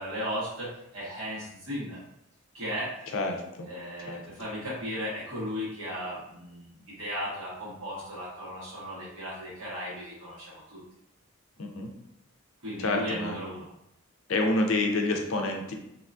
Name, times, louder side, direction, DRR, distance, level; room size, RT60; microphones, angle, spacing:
voice 1, 0.0-2.0 2.5-2.9 3.7-10.8 12.6-13.7, equal, 85° right, -7 dB, 1.4 m, -36 dB
voice 2, 3.1-3.7 4.0-4.2 11.6-11.9 12.8-13.4 14.3-15.7, left 2 dB, 65° left, 3 dB, 0.5 m, -28 dB
2.8 x 2.3 x 2.4 m, 0.81 s
head